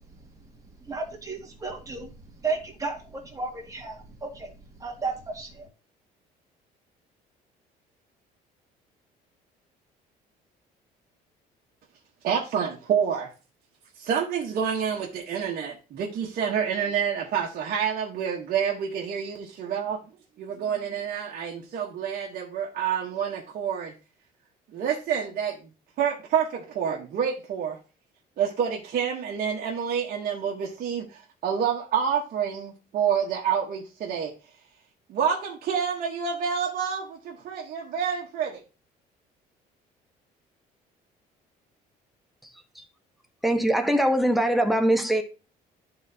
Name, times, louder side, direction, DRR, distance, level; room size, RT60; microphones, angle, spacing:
voice 1, 0.9-2.1 2.4-4.5 4.8-5.7, right 4 dB, 20° right, 1.9 m, -33 dB
voice 2, 12.2-13.3 14.0-20.0 20.4-23.9 24.7-25.7 26.0-27.8 28.4-34.3 35.1-38.6, right 7 dB, 60° right, 1.2 m, -28 dB
voice 3, 43.4-45.2, right 1 dB, ahead, 1.0 m, -22 dB
11.5 x 3.9 x 2.8 m
cardioid pair, 110°, 17 cm